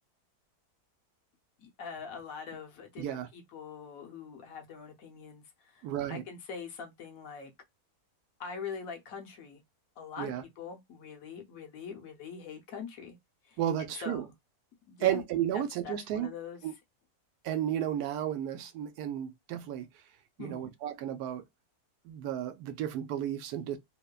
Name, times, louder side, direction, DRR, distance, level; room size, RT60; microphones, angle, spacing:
voice 1, 1.6-7.5 8.4-9.6 10.0-13.2 13.5-14.3 14.9-15.2 15.5-16.6 20.4-20.7, left 6 dB, 65° left, 1.1 m, -43 dB
voice 2, 3.0-3.3 5.8-6.2 10.2-10.4 13.6-14.2 15.0-16.3 16.6-16.7 17.4-19.9 20.4-21.4 22.1-23.8, right 11 dB, 80° right, 1.1 m, -33 dB
2.9 x 2.1 x 2.2 m
omnidirectional pair, 1.6 m